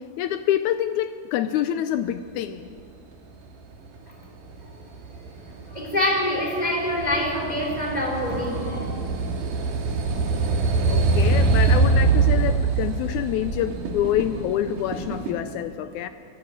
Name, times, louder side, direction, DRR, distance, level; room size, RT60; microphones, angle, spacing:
voice 1, 0.2-2.7 10.9-16.1, left 11 dB, 90° left, 11 dB, 1.6 m, -26 dB
sound 1, 4.0-15.3, right 4 dB, 65° right, 3.4 m, -24 dB
voice 2, 5.7-8.9, left 1 dB, 10° left, -1 dB, 3.8 m, -25 dB
19.5 x 14.5 x 9.9 m, 2.4 s
omnidirectional pair, 4.1 m